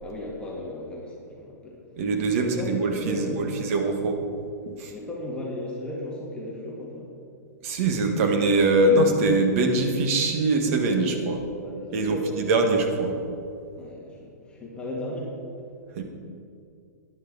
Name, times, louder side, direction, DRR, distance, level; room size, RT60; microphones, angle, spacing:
voice 1, 0.0-1.8 2.3-3.6 4.9-7.1 10.9-11.1 11.6-12.4 13.7-15.4, left 1 dB, 10° left, -4 dB, 2.1 m, -35 dB
voice 2, 2.0-4.2 4.7-4.9 7.6-11.4 11.9-13.2 15.9-16.0, right 2 dB, 50° right, 4 dB, 1.8 m, -23 dB
13.5 x 10.5 x 4.1 m, 2.4 s
hypercardioid pair, 135°, 9 cm